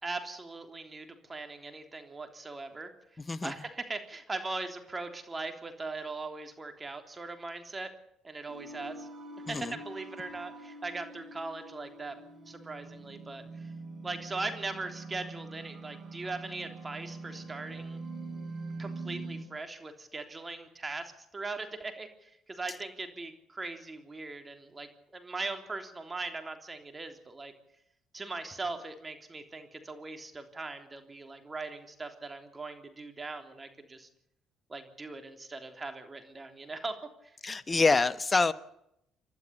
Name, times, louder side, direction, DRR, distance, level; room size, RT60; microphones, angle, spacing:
voice 1, 0.0-2.9 3.4-7.9 8.2-9.1 9.5-12.1 12.5-13.7 14.0-18.0 18.8-27.5 28.1-34.1 34.7-37.0 37.2-37.4, right 3 dB, 25° right, 6 dB, 3.4 m, -40 dB
sound 1, 8.5-19.4, right 3 dB, 45° right, 6.2 m, -44 dB
voice 2, 9.5-9.8 37.4-38.5, left 3 dB, 25° left, 14 dB, 1.2 m, -26 dB
29.0 x 12.0 x 8.4 m, 0.79 s
supercardioid pair, 70°, 0 cm